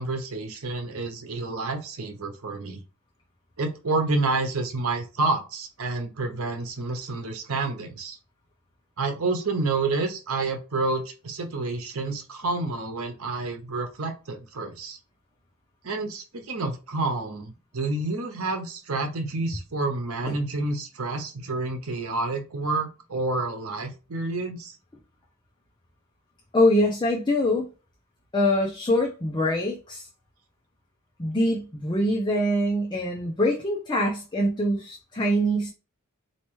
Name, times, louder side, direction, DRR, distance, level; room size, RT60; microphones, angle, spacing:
voice 1, 0.0-2.8 3.6-8.2 9.0-15.0 15.8-24.8, right 3 dB, 85° right, 0.9 m, -29 dB
voice 2, 26.5-27.7 28.3-30.1 31.2-35.7, left 1 dB, 20° left, 0.6 m, -24 dB
4.4 x 2.9 x 3.0 m
head